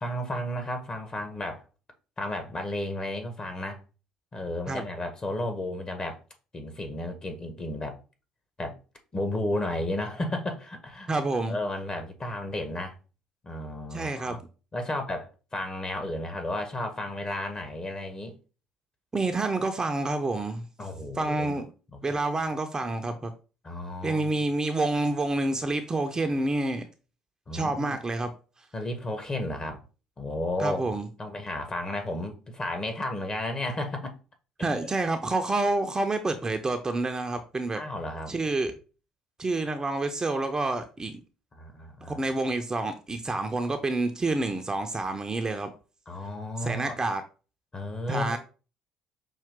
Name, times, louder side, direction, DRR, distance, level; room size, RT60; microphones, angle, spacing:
voice 1, 0.0-1.6 2.2-3.8 4.3-6.2 6.5-8.0 8.6-8.8 9.1-11.1 11.5-12.9 13.4-14.4 14.7-18.3 20.8-21.6 21.9-22.0 23.6-24.5 27.5-28.0 28.7-29.8 30.2-30.8 31.2-34.1 34.6-34.9 37.7-38.3 41.6-42.2 46.1-47.0 47.7-48.4, left 1 dB, 30° left, 1.5 m, -33 dB
voice 2, 11.1-11.5 13.9-14.4 19.1-20.7 21.2-21.7 22.0-23.3 24.0-26.8 27.5-28.3 30.6-31.1 34.6-37.8 38.3-38.8 39.4-41.2 42.1-45.7 46.6-47.2 48.1-48.4, right 2 dB, 25° right, 0.7 m, -28 dB
5.7 x 2.4 x 3.7 m
hypercardioid pair, 60°, 3 cm